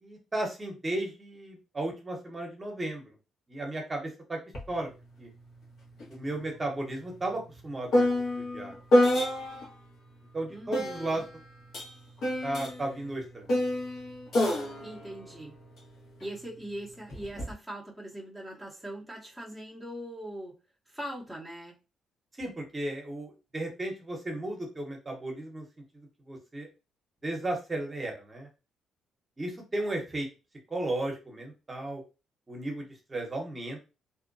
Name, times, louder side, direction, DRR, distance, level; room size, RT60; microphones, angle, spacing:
voice 1, 0.0-3.1 3.5-4.4 4.7-4.9 5.2-5.3 6.1-8.1 8.3-8.8 10.3-11.2 12.4-13.5 22.4-25.7 25.9-26.7 27.2-28.5 29.4-30.3 30.7-32.0 32.5-33.8, right 1 dB, 25° right, 1 dB, 0.9 m, -34 dB
sound 1, 4.5-4.7 5.0-9.8 10.7-16.3 17.1-17.5, left 1 dB, 60° left, 1.2 m, -29 dB
voice 2, 10.5-11.2 14.8-15.6 16.2-20.5 20.9-21.8, right 1 dB, ahead, -3 dB, 0.8 m, -41 dB
2.6 x 2.1 x 2.5 m, 0.30 s
cardioid pair, 90°, 0 cm